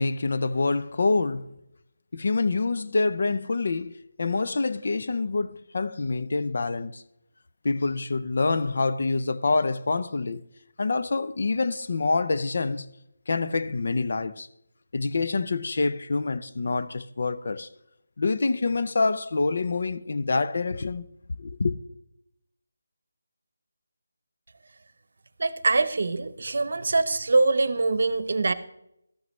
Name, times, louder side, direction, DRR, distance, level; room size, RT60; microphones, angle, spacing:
voice 1, 0.0-1.6 2.1-7.0 7.6-10.4 10.8-12.9 13.3-14.5 14.9-17.7 18.2-21.1 21.4-21.7, left 3 dB, 50° left, 0.5 m, -26 dB
voice 2, 25.4-28.5, right 3 dB, 55° right, 0.8 m, -23 dB
13.0 x 11.0 x 3.1 m
figure-of-eight pair, 175°, 0 cm